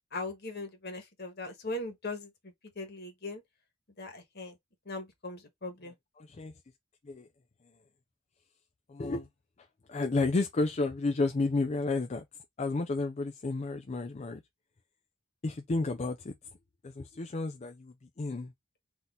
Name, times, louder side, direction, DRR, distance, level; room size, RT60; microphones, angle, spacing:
voice 1, 0.1-2.3 2.7-3.4 4.0-4.6 4.8-5.9, left 2 dB, 55° left, 1.5 m, -39 dB
voice 2, 6.2-6.5 7.0-7.3 8.9-9.3 9.9-12.2 12.6-14.4 15.4-16.3 16.8-18.5, left 3 dB, 35° left, 0.4 m, -31 dB
4.0 x 2.8 x 3.7 m
head